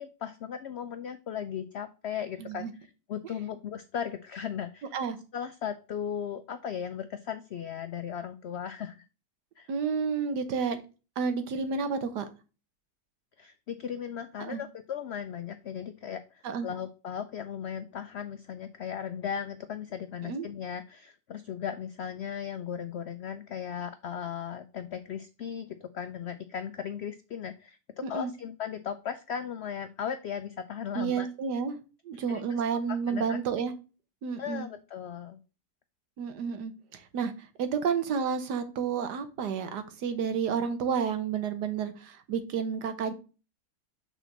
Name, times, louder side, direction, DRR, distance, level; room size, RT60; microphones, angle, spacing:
voice 1, 0.0-4.9 5.3-9.0 9.6-9.7 13.4-27.8 28.1-31.3 32.3-32.4 32.9-33.4 34.4-35.4, left 8 dB, 85° left, 10 dB, 0.5 m, -37 dB
voice 2, 2.4-2.7 4.9-5.2 9.7-10.8 11.2-12.3 14.4-14.6 16.4-16.7 20.2-20.4 28.0-28.3 30.9-31.8 32.0-33.7 34.2-34.7 36.2-37.3 37.6-43.1, right 6 dB, 80° right, 9 dB, 1.6 m, -30 dB
5.9 x 4.0 x 5.8 m, 0.32 s
omnidirectional pair, 1.7 m